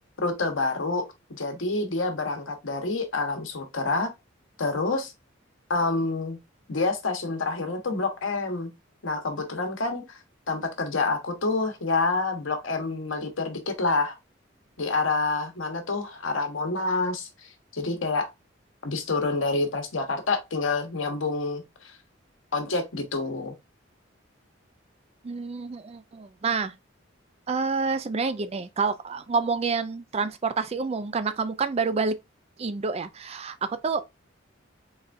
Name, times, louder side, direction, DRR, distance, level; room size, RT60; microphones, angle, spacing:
voice 1, 0.2-1.0 1.3-4.1 4.6-5.1 5.7-6.4 6.7-8.7 9.0-10.2 10.5-14.2 14.8-18.3 18.8-22.0 22.5-23.5, left 3 dB, 85° left, 1.1 m, -28 dB
voice 2, 25.2-26.7 27.5-32.1 32.6-34.0, right 4 dB, 30° right, 0.4 m, -28 dB
4.0 x 3.4 x 2.5 m
head